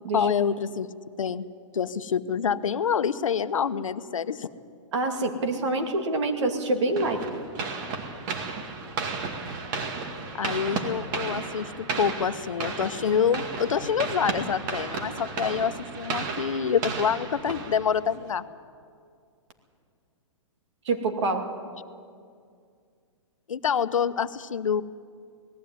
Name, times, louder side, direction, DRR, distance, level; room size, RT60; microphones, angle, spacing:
voice 1, 0.1-0.9 1.2-1.4 1.7-4.5 10.3-18.4 23.5-24.8, left 7 dB, 90° left, 13 dB, 0.9 m, -26 dB
voice 2, 4.9-7.2 20.8-21.5, right 2 dB, 60° right, 5 dB, 2.5 m, -26 dB
sound 1, 7.0-18.2, right 4 dB, 40° right, 2.2 m, -33 dB
18.5 x 15.5 x 9.4 m, 2.2 s
hypercardioid pair, 145°, 16 cm